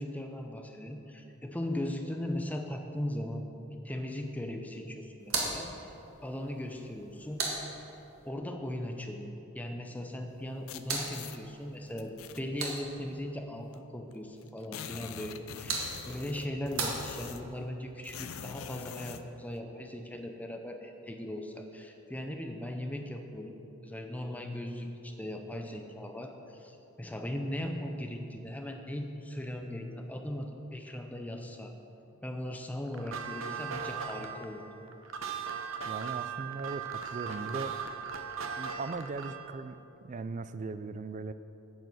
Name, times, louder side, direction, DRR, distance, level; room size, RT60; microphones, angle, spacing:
voice 1, 0.0-3.4 3.8-5.7 6.2-7.4 8.2-23.5 23.8-31.7 32.2-34.6, left 1 dB, 5° left, 4 dB, 0.6 m, -38 dB
sound 1, 5.2-8.3 10.3-13.2 15.2-17.7, right 3 dB, 90° right, 1.6 m, -39 dB
sound 2, 10.7-11.4 12.0-12.8 13.7-13.8 14.1-14.2 14.4-17.6 18.0-19.3, left 7 dB, 85° left, 0.5 m, -44 dB
sound 3, 32.9-39.5, right 7 dB, 70° right, 0.8 m, -38 dB
voice 2, 35.8-37.7 38.6-41.3, right 3 dB, 35° right, 12 dB, 0.3 m, -39 dB
9.1 x 7.9 x 6.2 m, 3.0 s
head